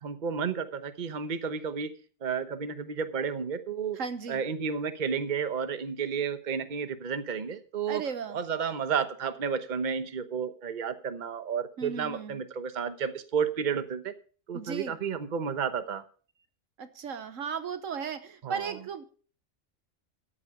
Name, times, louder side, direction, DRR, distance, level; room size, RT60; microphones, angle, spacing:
voice 1, 0.0-1.9 2.2-4.0 4.3-8.0 8.3-14.1 14.5-16.0 18.4-18.7, right 6 dB, 35° right, 10 dB, 1.1 m, -32 dB
voice 2, 3.9-4.4 7.9-8.4 11.8-12.4 14.5-15.0 16.8-19.0, right 6 dB, 70° right, 11 dB, 1.3 m, -36 dB
13.5 x 8.8 x 5.4 m, 0.41 s
omnidirectional pair, 1.4 m